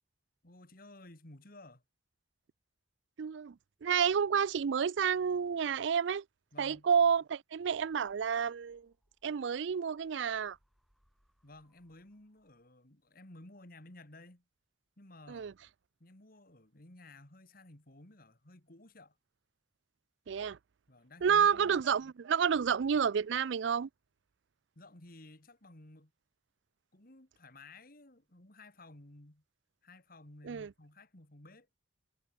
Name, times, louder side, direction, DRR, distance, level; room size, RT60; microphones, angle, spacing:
voice 1, 0.4-1.8 6.5-6.9 11.4-14.4 15.0-15.5 16.0-19.2 20.9-21.8 24.8-26.1 26.9-29.4 29.8-31.7, left 2 dB, 50° left, 2.5 m, -55 dB
voice 2, 3.2-6.2 6.6-8.9 9.2-10.6 15.3-15.5 20.3-20.6 21.2-23.9 30.4-30.7, right 7 dB, 70° right, 0.4 m, -30 dB
sound 1, 7.6-12.9, equal, ahead, 4.3 m, -76 dB
head